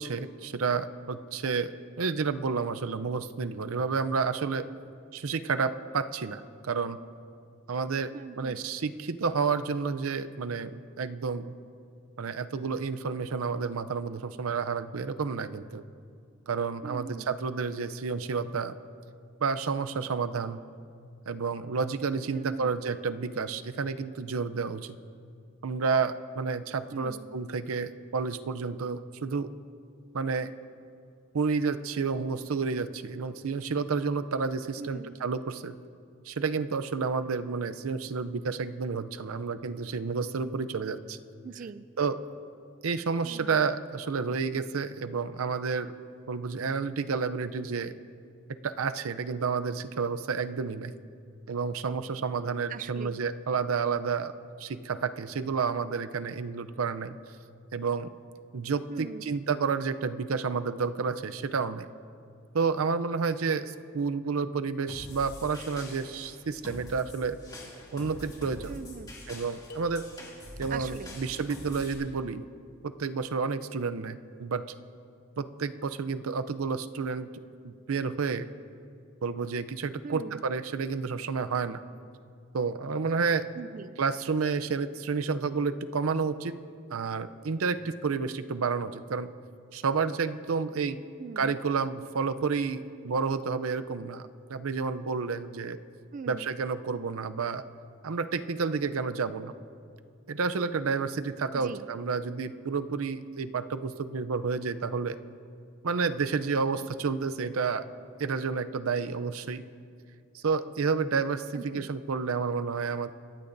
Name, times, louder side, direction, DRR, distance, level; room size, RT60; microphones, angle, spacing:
voice 1, 0.0-1.7 2.0-4.7 5.1-7.0 7.7-8.1 8.4-11.6 12.2-15.8 16.5-18.8 19.4-20.6 21.3-24.9 25.6-29.5 30.1-30.5 31.3-35.7 36.2-41.2 42.0-42.2 42.8-45.9 46.3-47.9 48.6-50.9 51.5-54.3 54.6-57.2 57.7-58.1 58.5-61.9 62.5-67.4 67.9-68.7 69.3-70.0 70.6-72.4 72.8-74.6 75.4-77.3 77.6-78.5 79.2-81.8 82.5-83.5 84.0-86.6 86.9-89.3 89.7-91.0 91.4-95.8 96.3-97.6 98.0-99.5 100.3-105.2 105.8-107.8 108.2-109.6 110.3-113.1, right 5 dB, 85° right, 11 dB, 0.6 m, -30 dB
voice 2, 8.1-8.6 16.8-17.3 22.3-22.8 26.9-27.3 34.8-35.1 41.4-41.9 43.2-43.6 52.7-53.2 58.9-59.3 68.7-69.1 70.7-71.2 80.0-80.4 83.5-84.0 91.2-91.5 96.1-96.5 101.5-101.9 111.5-111.9, right 5 dB, 40° right, 14 dB, 0.3 m, -41 dB
sound 1, 64.9-71.9, left 1 dB, 20° left, 2.5 m, -45 dB
sound 2, 69.7-70.8, left 2 dB, 50° left, 1.1 m, -50 dB
25.0 x 15.5 x 2.6 m, 2.4 s
head